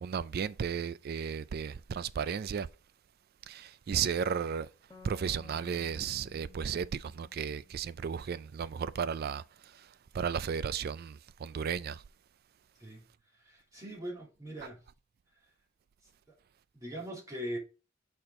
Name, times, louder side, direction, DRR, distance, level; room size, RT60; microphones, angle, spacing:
voice 1, 0.0-2.7 3.5-4.7 5.0-9.4 10.1-11.2 11.4-12.0, right 7 dB, 50° right, 0.3 m, -34 dB
sound 1, 4.9-8.4, left 5 dB, 20° left, 1.0 m, -56 dB
voice 2, 13.3-14.8 16.3-16.4 16.7-17.6, equal, 15° right, 2.6 m, -41 dB
6.9 x 4.3 x 3.7 m
head